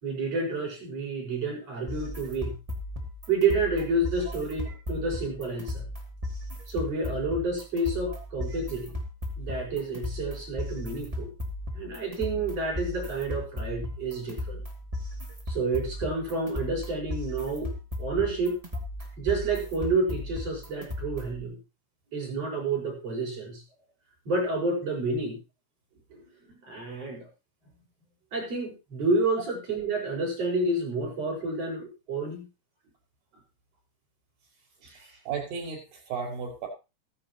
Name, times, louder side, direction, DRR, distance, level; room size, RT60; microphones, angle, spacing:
voice 1, 0.0-2.6 3.3-5.8 6.7-9.0 9.4-11.3 11.7-14.6 15.5-18.6 19.2-21.6 22.1-23.6 24.3-25.4 26.1-27.3 28.3-32.5 34.8-35.0, right 3 dB, 40° right, -1 dB, 6.9 m, -29 dB
sound 1, 1.9-21.4, left 1 dB, 10° right, 1.7 m, -36 dB
voice 2, 35.3-36.7, right 6 dB, 60° right, 1 dB, 7.4 m, -34 dB
15.0 x 14.5 x 3.0 m, 0.28 s
omnidirectional pair, 4.5 m